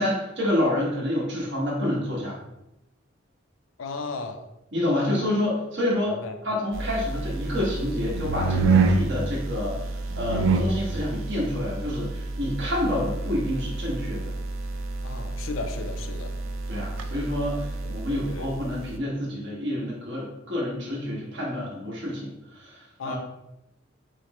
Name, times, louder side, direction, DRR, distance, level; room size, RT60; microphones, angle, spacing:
voice 1, 0.0-2.4 4.7-9.8 10.1-14.3 16.7-23.2, left 1 dB, 60° right, -5 dB, 1.4 m, -28 dB
voice 2, 3.8-4.5 6.1-6.4 15.0-16.4 18.1-18.5 23.0-23.2, left 3 dB, 90° left, 6 dB, 0.5 m, -35 dB
sound 1, 6.7-19.0, right 3 dB, 85° right, 0.4 m, -28 dB
6.1 x 2.1 x 3.0 m, 0.89 s
head